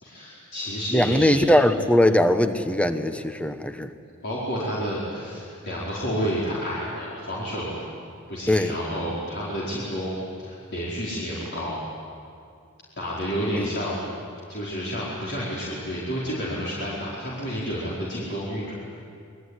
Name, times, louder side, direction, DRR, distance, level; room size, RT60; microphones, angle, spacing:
voice 1, 0.0-1.4 3.9-7.9 8.3-11.8 13.0-14.0 14.5-18.7, equal, 55° left, -7 dB, 4.8 m, -30 dB
voice 2, 0.9-3.9 8.5-8.7 13.5-13.7, left 1 dB, 5° left, 9 dB, 1.1 m, -20 dB
27.0 x 22.0 x 9.9 m, 2.4 s
head